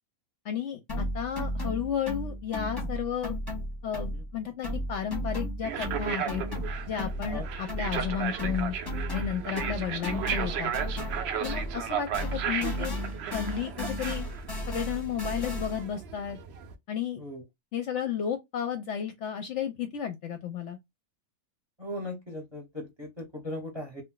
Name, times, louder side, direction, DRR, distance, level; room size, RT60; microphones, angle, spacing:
voice 1, 0.4-3.3 3.8-6.4 6.9-8.8 9.1-10.7 11.4-13.0 13.3-14.3 14.7-16.4 16.9-17.2 17.7-20.8, left 8 dB, 65° left, 0.8 m, -33 dB
sound 1, 0.9-4.4 4.6-11.9 12.1-15.9, equal, 20° left, 0.8 m, -35 dB
sound 2, 5.6-16.7, right 8 dB, 65° right, 0.7 m, -35 dB
voice 2, 21.8-24.0, left 1 dB, 25° right, 0.8 m, -38 dB
2.6 x 2.2 x 3.7 m
omnidirectional pair, 1.5 m